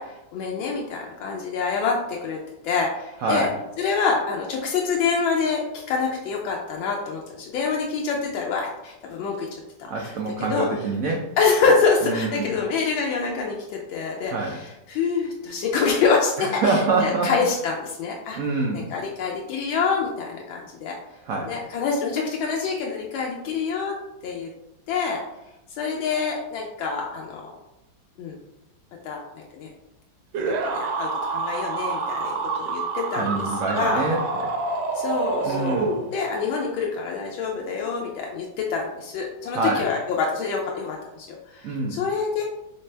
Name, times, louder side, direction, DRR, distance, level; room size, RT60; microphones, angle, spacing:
voice 1, 0.0-3.5 3.8-9.5 9.8-10.1 10.5-10.7 11.4-18.4 18.7-21.0 21.5-23.9 24.2-24.5 24.9-25.2 25.8-27.5 28.2-28.4 29.0-29.7 30.5-33.4 33.7-34.0 34.9-35.8 36.1-41.3 41.5-42.4, left 5 dB, 85° left, -1 dB, 1.4 m, -26 dB
voice 2, 9.9-11.2 12.0-12.5 14.3-14.6 16.5-17.3 18.3-18.9 21.2-21.5 33.1-34.5 35.4-35.9 39.5-39.9 41.6-42.0, right 3 dB, 85° right, 0 dB, 0.7 m, -25 dB
sound 1, 30.3-36.4, right 4 dB, 70° right, 1.2 m, -27 dB
4.2 x 3.3 x 3.2 m, 0.91 s
omnidirectional pair, 2.1 m